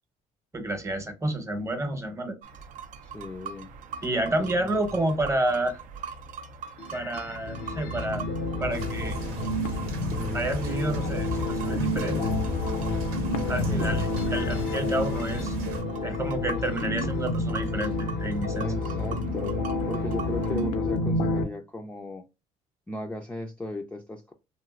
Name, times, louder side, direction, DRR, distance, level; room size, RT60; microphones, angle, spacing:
voice 1, 0.5-2.3 4.0-5.8 6.9-8.3 8.6-9.2 10.3-12.3 13.5-15.5 16.0-18.7, right 1 dB, 20° right, 0.8 m, -29 dB
sound 1, 2.4-20.7, right 6 dB, 60° right, 0.4 m, -43 dB
voice 2, 3.0-3.7 4.4-4.9 13.7-14.0 18.6-19.5 19.9-22.2 22.9-24.3, left 2 dB, 10° left, 0.4 m, -36 dB
sound 2, 6.8-21.4, left 2 dB, 90° left, 0.6 m, -29 dB
sound 3, 8.7-15.8, equal, 90° right, 0.9 m, -34 dB
3.0 x 2.6 x 2.4 m
supercardioid pair, 90°, 15 cm